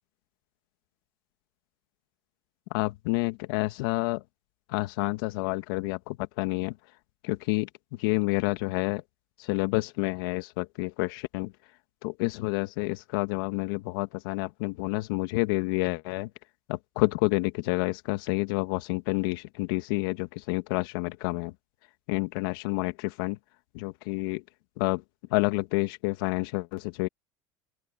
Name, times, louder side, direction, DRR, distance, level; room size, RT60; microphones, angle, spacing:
voice 1, 2.7-4.2 4.7-6.8 7.2-9.0 9.4-11.5 12.0-16.3 16.7-21.5 22.1-23.4 23.7-24.4 24.8-25.0 25.3-27.1, left 23 dB, 75° left, 2.2 m, -29 dB
open air
supercardioid pair, 95°, 12 cm